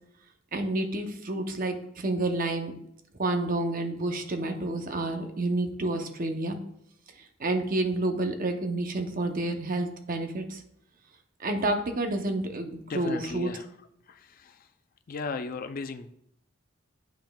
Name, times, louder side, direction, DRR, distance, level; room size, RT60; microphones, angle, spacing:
voice 1, 0.5-2.7 3.2-6.6 7.4-10.6 11.4-13.5, right 2 dB, 45° right, 5 dB, 0.7 m, -29 dB
voice 2, 12.9-13.7 14.1-14.7 15.1-16.1, left 4 dB, 45° left, 9 dB, 0.4 m, -36 dB
8.8 x 5.6 x 2.3 m, 0.74 s
head